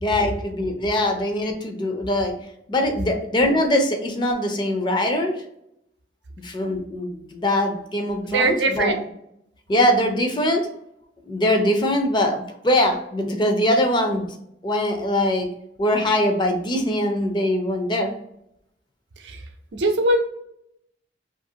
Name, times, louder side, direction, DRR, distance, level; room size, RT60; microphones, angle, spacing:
voice 1, 0.0-2.3 2.7-5.3 6.4-8.9 9.7-10.6 11.3-14.3 14.6-15.5 15.8-18.1, left 1 dB, 25° left, 4 dB, 0.4 m, -22 dB
voice 2, 8.2-9.0 19.2-19.4 19.7-20.2, right 2 dB, 90° right, 5 dB, 0.5 m, -21 dB
2.7 x 2.5 x 2.8 m, 0.77 s
head